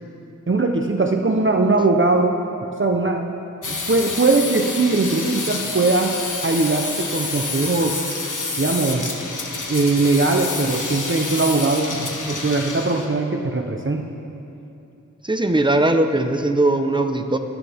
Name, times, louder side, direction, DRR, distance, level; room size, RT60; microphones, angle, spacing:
voice 1, 0.5-2.4 2.8-3.2 3.7-6.1 6.4-8.0 8.6-9.1 9.7-11.9 12.3-14.1, right 3 dB, 40° right, 2 dB, 1.0 m, -20 dB
sound 1, 3.6-13.1, left 3 dB, 70° left, 1.5 m, -28 dB
voice 2, 15.2-17.4, right 2 dB, 15° right, 6 dB, 1.0 m, -19 dB
25.0 x 9.3 x 3.6 m, 2.8 s
cardioid pair, 45°, 32 cm